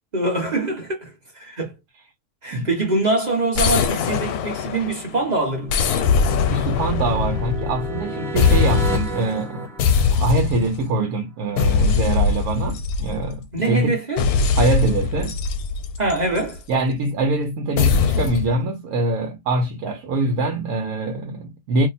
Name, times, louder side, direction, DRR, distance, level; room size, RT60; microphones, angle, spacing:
voice 1, 0.1-1.7 2.4-5.7 13.5-14.3 16.0-16.6, right 2 dB, 30° right, 1.0 m, -24 dB
sound 1, 3.5-5.1 5.7-8.0 8.4-9.2 9.8-10.8 11.6-13.4 14.2-16.6 17.8-18.5, left 5 dB, 80° left, 1.1 m, -21 dB
sound 2, 5.0-10.7, equal, ahead, 0.6 m, -32 dB
voice 2, 6.5-9.7 10.1-14.0 14.5-15.4 16.7-21.9, right 2 dB, 75° right, 1.2 m, -24 dB
2.9 x 2.1 x 4.0 m
omnidirectional pair, 1.6 m